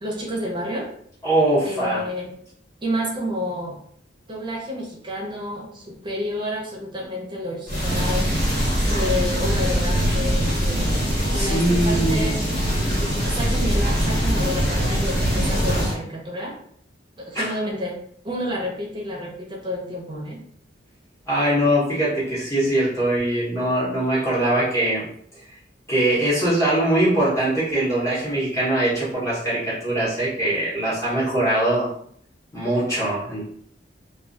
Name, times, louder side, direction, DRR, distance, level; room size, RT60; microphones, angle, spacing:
voice 1, 0.0-0.9 1.6-2.3 2.8-3.8 4.3-8.3 8.9-11.0 11.3-12.4 12.8-16.6 17.2-18.0 18.2-20.4, equal, 25° right, -2 dB, 0.6 m, -30 dB
voice 2, 1.2-2.0 11.3-12.4 17.3-17.5 21.3-25.0 25.9-31.9 32.5-33.5, right 1 dB, 15° left, -9 dB, 0.9 m, -22 dB
sound 1, 7.7-16.0, equal, 55° left, 1.3 m, -22 dB
2.3 x 2.2 x 2.5 m, 0.63 s
head